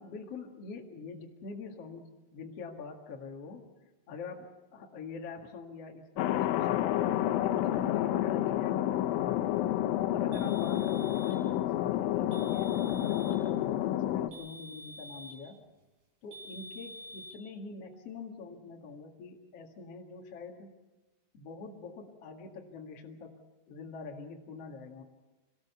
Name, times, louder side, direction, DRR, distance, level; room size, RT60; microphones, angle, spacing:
voice 1, 0.0-3.7 4.1-9.4 10.1-15.6 16.2-20.7 21.3-23.4 23.7-25.0, left 4 dB, 50° left, 1 dB, 1.9 m, -45 dB
Thunder, 6.2-14.3, left 13 dB, 80° left, 3.2 m, -29 dB
sound 1, 10.3-11.4 12.3-13.4 14.3-15.5 16.3-17.4, equal, 60° right, 5.8 m, -48 dB
25.0 x 18.5 x 7.0 m, 1.1 s
omnidirectional pair, 5.6 m